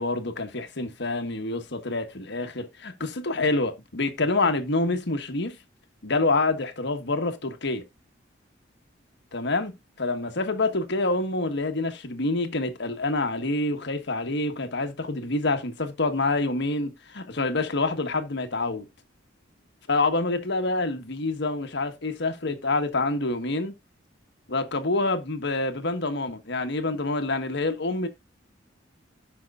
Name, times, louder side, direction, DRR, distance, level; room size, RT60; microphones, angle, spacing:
voice 1, 0.0-5.6 6.0-7.8 9.3-18.9 19.9-23.7 24.5-28.1, left 2 dB, 65° left, 1.4 m, -27 dB
16.5 x 5.5 x 2.4 m
head